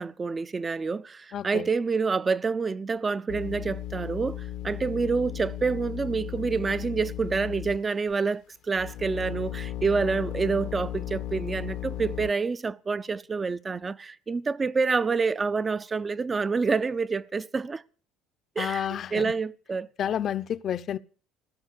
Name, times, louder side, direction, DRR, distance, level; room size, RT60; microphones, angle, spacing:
voice 1, 0.0-17.8 18.6-19.9, right 4 dB, 25° right, 0.7 m, -28 dB
voice 2, 1.3-1.7 18.6-19.3 20.0-21.0, left 9 dB, 50° left, 0.8 m, -30 dB
sound 1, 3.3-8.1 8.7-12.3, left 12 dB, 70° left, 1.0 m, -36 dB
16.0 x 13.0 x 6.7 m
cardioid pair, 105°, 0 cm